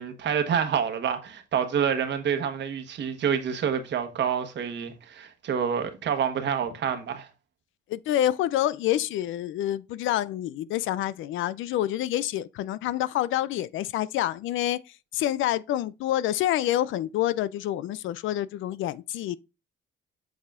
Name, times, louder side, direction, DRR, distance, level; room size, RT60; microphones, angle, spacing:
voice 1, 0.0-7.3, right 7 dB, 65° right, 1.2 m, -27 dB
voice 2, 7.9-14.8 15.1-19.4, left 13 dB, 80° left, 0.4 m, -27 dB
8.1 x 4.8 x 2.5 m
cardioid pair, 90°, 20 cm